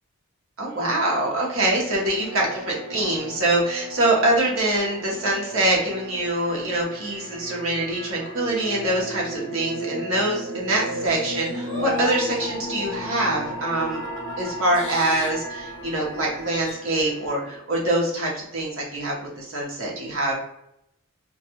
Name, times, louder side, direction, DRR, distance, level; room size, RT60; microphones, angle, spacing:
voice 1, 0.6-14.0 14.4-20.3, right 1 dB, 65° right, -2 dB, 0.9 m, -24 dB
sound 1, 0.7-17.6, right 1 dB, 20° right, 1.1 m, -36 dB
sound 2, 5.2-6.5 10.8-16.7, left 1 dB, 15° left, 1.1 m, -36 dB
2.2 x 2.2 x 2.9 m, 0.79 s
head